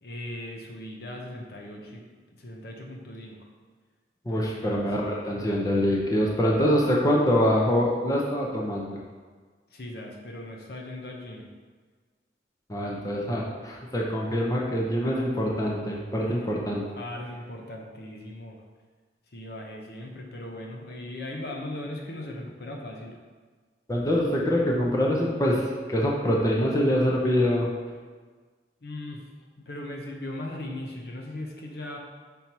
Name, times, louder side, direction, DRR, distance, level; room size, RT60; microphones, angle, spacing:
voice 1, 0.0-3.5 4.3-4.5 4.8-4.9 9.7-11.5 16.2-16.4 17.0-18.6 19.3-23.2 28.8-29.3 29.6-32.0, left 1 dB, 60° left, 0 dB, 0.8 m, -38 dB
voice 2, 4.3-9.0 12.7-16.8 23.9-25.6 25.9-27.7, equal, 20° left, -3 dB, 0.7 m, -24 dB
5.3 x 4.4 x 4.5 m, 1.5 s
head